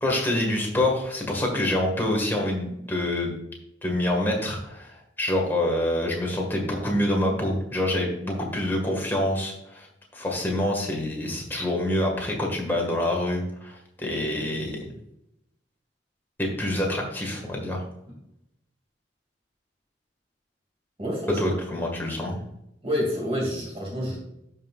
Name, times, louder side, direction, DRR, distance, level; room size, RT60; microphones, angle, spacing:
voice 1, 0.0-3.3 3.8-9.9 10.1-14.8 16.4-17.8 21.4-22.4, left 1 dB, 10° left, 0 dB, 1.8 m, -26 dB
voice 2, 21.0-21.4 22.8-24.2, equal, 30° right, -2 dB, 2.5 m, -28 dB
12.5 x 5.6 x 2.5 m, 0.81 s
head